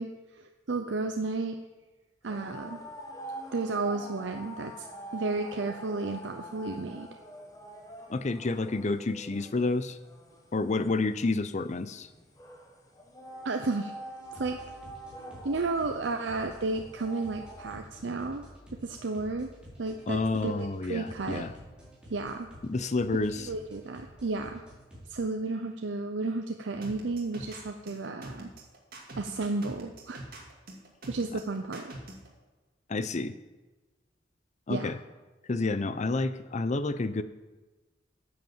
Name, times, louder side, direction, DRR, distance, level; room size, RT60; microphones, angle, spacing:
voice 1, 0.0-1.6 2.2-2.9 3.5-4.9 5.1-7.1 13.4-13.9 14.3-14.6 15.2-18.5 18.8-19.5 19.8-21.5 22.1-22.5 23.5-24.6 25.1-28.5 29.2-30.2 31.1-31.9 34.7-34.9, right 3 dB, 85° right, 5 dB, 0.7 m, -33 dB
sound 1, 2.2-17.7, right 1 dB, 20° left, 1.5 m, -46 dB
voice 2, 8.1-10.0 10.5-12.1 20.1-21.5 22.6-23.5 32.9-33.3 34.7-35.0 35.5-37.2, left 3 dB, 40° left, 12 dB, 0.6 m, -29 dB
sound 2, 14.2-25.1, equal, 5° right, 3.7 m, -51 dB
sound 3, 26.8-32.3, right 1 dB, 55° right, 2.3 m, -44 dB
9.2 x 7.9 x 7.2 m, 1.2 s
head